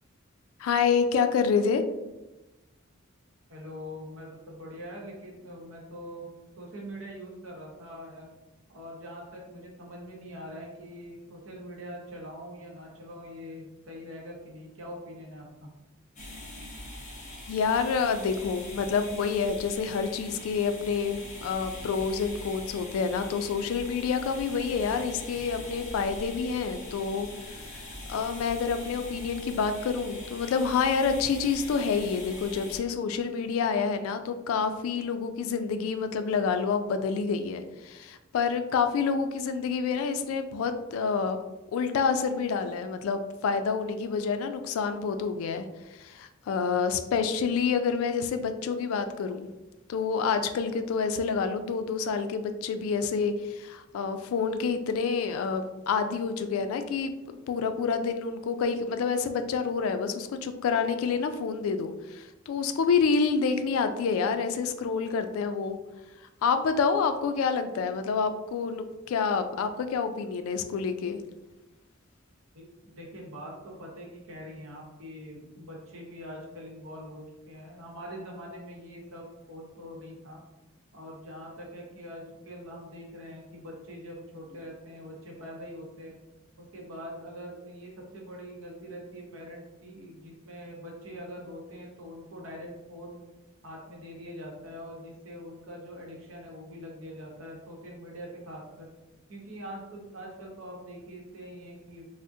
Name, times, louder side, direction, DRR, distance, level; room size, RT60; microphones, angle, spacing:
voice 1, 0.6-1.8 17.5-27.3 27.7-27.8 28.1-41.4 41.7-49.5 49.9-65.8 66.4-71.2, left 5 dB, 80° left, 9 dB, 0.3 m, -28 dB
voice 2, 3.5-6.3 6.6-8.3 8.7-15.7 72.5-80.4 80.9-86.2 86.7-93.2 93.6-98.9 99.3-102.0, equal, 75° right, -2 dB, 0.9 m, -43 dB
sound 1, 16.2-32.8, left 1 dB, 35° left, 0.7 m, -42 dB
3.5 x 2.1 x 2.6 m, 1.1 s
head